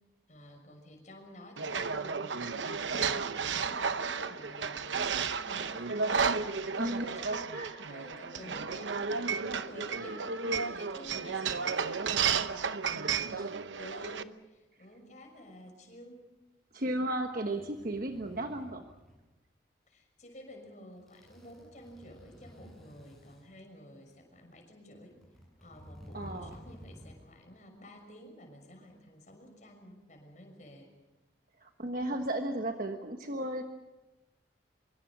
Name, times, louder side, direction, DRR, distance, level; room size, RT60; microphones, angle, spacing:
voice 1, 0.3-7.5 7.8-13.3 13.8-16.2 19.9-25.2 25.6-30.9, equal, 40° left, 3 dB, 6.2 m, -51 dB
sound 1, 1.6-14.2, right 5 dB, 90° right, 0.9 m, -33 dB
sound 2, 16.7-19.2 20.5-20.7 20.9-23.4 24.1-24.2 24.9-27.2 27.5-27.6, equal, ahead, 8.0 m, -52 dB
voice 2, 16.7-18.9 26.1-26.6 31.6-33.6, right 1 dB, 50° right, 4 dB, 1.3 m, -35 dB
25.0 x 24.0 x 6.1 m, 1.0 s
head